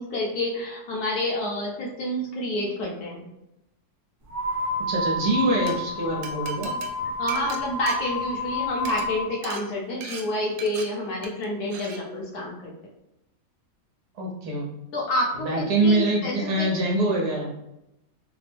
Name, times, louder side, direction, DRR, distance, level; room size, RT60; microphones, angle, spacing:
voice 1, 0.0-3.3 7.2-12.7 14.9-16.7, left 1 dB, 70° left, -2 dB, 1.1 m, -28 dB
sound 1, 4.3-9.2, left 1 dB, 20° right, 0.5 m, -29 dB
voice 2, 4.9-6.7 14.1-14.6 15.3-17.5, right 2 dB, 65° right, -2 dB, 1.2 m, -24 dB
Glass, 5.4-5.7 6.2-8.5 8.8-9.0 9.4-9.6 10.0-10.2 10.6-10.8 11.2-11.4 11.7-12.0, right 6 dB, 85° right, 1.3 m, -38 dB
3.3 x 2.0 x 3.3 m, 0.86 s
omnidirectional pair, 2.0 m